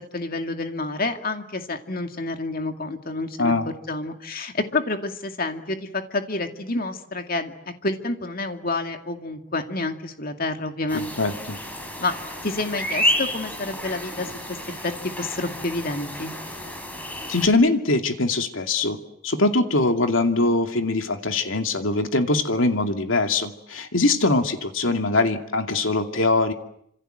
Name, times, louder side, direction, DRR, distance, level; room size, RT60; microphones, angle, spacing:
voice 1, 0.1-3.5 3.9-11.1 12.0-12.1 12.4-16.3, left 2 dB, 45° left, 6 dB, 2.3 m, -29 dB
voice 2, 10.9-11.6 17.3-26.5, left 2 dB, 70° left, 5 dB, 2.5 m, -22 dB
sound 1, 10.9-17.5, left 1 dB, 10° left, 4.6 m, -30 dB
27.5 x 26.5 x 7.9 m, 0.71 s
head